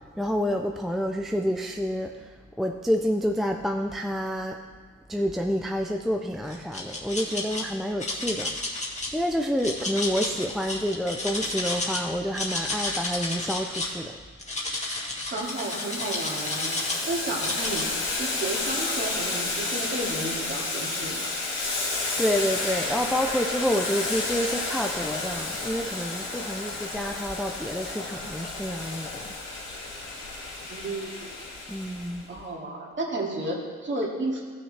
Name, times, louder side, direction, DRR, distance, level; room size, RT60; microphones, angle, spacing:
voice 1, 0.2-2.3 2.6-4.6 5.1-8.6 9.1-14.2 22.2-29.3 31.7-32.2, equal, ahead, 3 dB, 0.4 m, -28 dB
sound 1, 6.5-7.6 8.0-9.1 9.6-12.0 12.3-14.0 14.4-17.0 17.4-17.8, left 2 dB, 25° left, 2.0 m, -31 dB
voice 2, 15.3-17.8 18.2-21.3 30.7-31.1 32.3-34.4, right 2 dB, 40° right, -2 dB, 2.3 m, -32 dB
Boiling, 15.4-32.2, left 3 dB, 60° left, 2.4 m, -31 dB
14.5 x 6.4 x 3.3 m, 1.5 s
cardioid pair, 90°, 30 cm